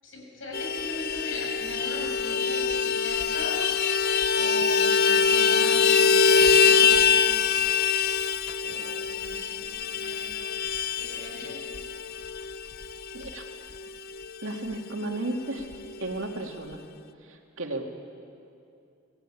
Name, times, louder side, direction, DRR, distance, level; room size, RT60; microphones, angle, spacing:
voice 1, 0.0-3.7 4.3-7.4 8.6-10.5 11.0-11.7, left 1 dB, 65° left, 0 dB, 6.9 m, -40 dB
Vehicle horn car horn honking, 0.5-14.4 14.7-14.8 15.1-15.3 15.6-16.3, left 6 dB, 45° left, 0.6 m, -24 dB
voice 2, 13.1-13.5 14.4-15.6 16.0-16.8 17.2-17.8, right 2 dB, 70° right, 2 dB, 2.6 m, -33 dB
27.0 x 18.0 x 8.7 m, 2.5 s
head